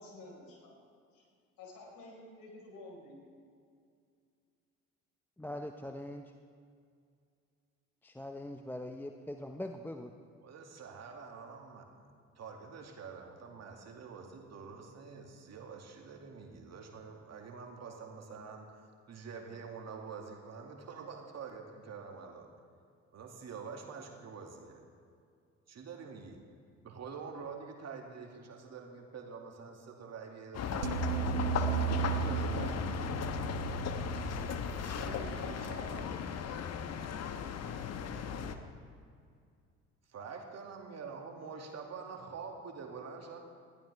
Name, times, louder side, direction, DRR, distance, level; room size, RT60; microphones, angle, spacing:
voice 1, 0.0-1.2 1.6-3.2, left 2 dB, 55° left, -1 dB, 4.7 m, -51 dB
voice 2, 5.4-6.3 8.0-10.1, left 1 dB, 5° left, 5 dB, 0.7 m, -42 dB
voice 3, 10.4-12.1 12.4-22.5 23.1-24.8 25.7-26.4 26.8-32.8 34.8-36.2 38.4-38.6 40.1-43.4, right 5 dB, 40° right, 2 dB, 2.2 m, -46 dB
sound 1, 30.5-38.6, left 7 dB, 40° left, 1.1 m, -36 dB
sound 2, 30.8-36.0, right 11 dB, 90° right, 0.7 m, -36 dB
20.0 x 14.5 x 3.4 m, 2.3 s
figure-of-eight pair, 55°, 39 cm